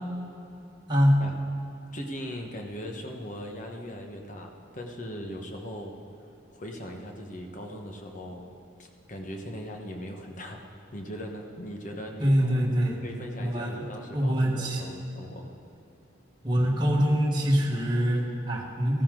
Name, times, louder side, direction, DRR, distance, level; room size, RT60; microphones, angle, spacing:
voice 1, 0.9-1.2 12.2-13.0 13.4-13.8 14.1-14.8 16.4-19.0, equal, 20° right, -2 dB, 1.5 m, -24 dB
voice 2, 1.9-5.9 6.5-8.5 8.8-10.6 10.9-12.3 13.0-15.5, equal, 40° left, 2 dB, 1.2 m, -39 dB
14.5 x 14.5 x 3.8 m, 2.7 s
head